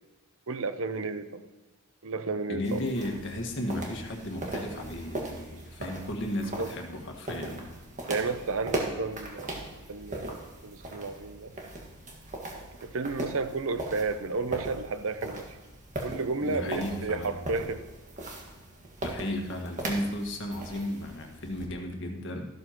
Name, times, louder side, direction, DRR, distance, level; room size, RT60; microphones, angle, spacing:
voice 1, 0.5-1.5 2.0-2.9 6.6-6.7 8.1-11.5 12.8-15.6 16.0-17.8, right 3 dB, 60° right, 10 dB, 0.7 m, -32 dB
voice 2, 2.5-7.6 16.4-17.4 19.0-22.5, left 1 dB, 55° left, 2 dB, 1.6 m, -34 dB
sound 1, 2.6-21.7, right 1 dB, 35° right, 1.7 m, -39 dB
14.0 x 12.0 x 3.0 m, 1.1 s
head